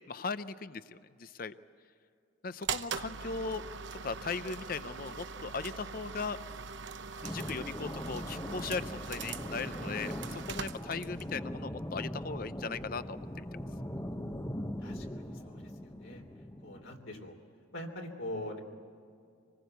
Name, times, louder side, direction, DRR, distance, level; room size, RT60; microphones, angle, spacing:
voice 1, 0.1-1.5 2.4-3.6 4.0-6.4 7.2-13.5, left 4 dB, 45° left, 13 dB, 0.6 m, -38 dB
sound 1, 2.6-11.3, right 5 dB, 65° right, 0.8 m, -41 dB
sound 2, 7.2-17.1, left 1 dB, 15° left, 0.8 m, -41 dB
voice 2, 14.8-16.2 16.6-17.3 17.7-18.6, left 1 dB, 75° left, 3 dB, 3.3 m, -43 dB
26.0 x 20.0 x 8.1 m, 2.4 s
head